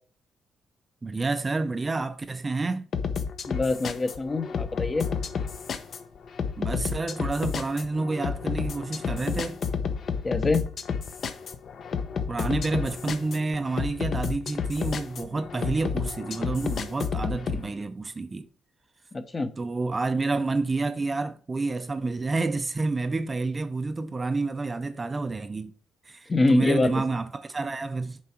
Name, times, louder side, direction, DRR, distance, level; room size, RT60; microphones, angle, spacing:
voice 1, 1.0-2.9 6.6-9.6 12.3-18.5 19.6-25.7 26.1-28.2, right 3 dB, 25° right, 0.5 m, -29 dB
sound 1, 2.9-17.6, left 6 dB, 55° left, 0.9 m, -31 dB
voice 2, 3.5-5.1 10.2-10.7 19.1-19.5 26.3-26.9, left 2 dB, 25° left, 0.8 m, -25 dB
7.5 x 4.7 x 4.3 m
cardioid pair, 110°, 0 cm